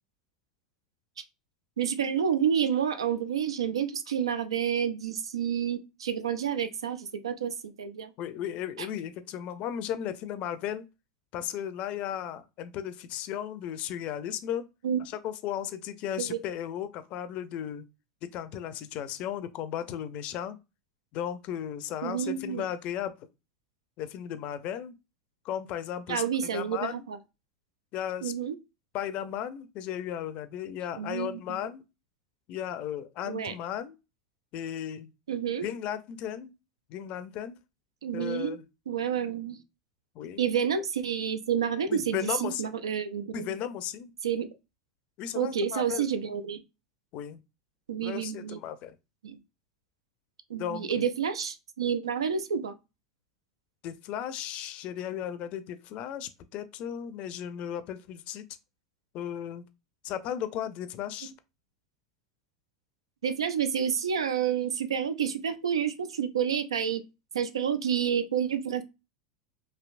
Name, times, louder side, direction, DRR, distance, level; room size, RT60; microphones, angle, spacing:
voice 1, 1.8-8.1 8.8-8.9 14.8-15.0 16.2-16.4 22.0-22.6 26.1-27.2 28.2-28.6 31.0-31.6 33.2-33.5 35.3-35.7 38.0-38.6 38.9-39.6 40.4-43.5 44.2-44.5 45.3-46.6 47.9-48.6 49.2-49.4 50.5-52.8 61.2-61.3 63.2-67.0 67.3-68.8, right 8 dB, 80° right, 0.4 m, -29 dB
voice 2, 8.2-10.9 11.3-14.6 15.0-17.8 18.2-20.6 21.1-23.1 24.0-24.9 25.4-26.2 26.5-27.1 27.9-28.3 28.9-31.8 32.5-34.0 34.5-35.1 35.6-36.5 36.9-37.6 38.1-38.7 40.1-40.5 41.9-42.6 43.3-44.1 45.2-46.1 47.1-47.4 48.0-49.0 50.6-51.1 53.8-58.4 59.1-59.7 60.0-61.3, left 10 dB, 50° left, 0.5 m, -35 dB
3.3 x 2.7 x 2.5 m
hypercardioid pair, 85°, 3 cm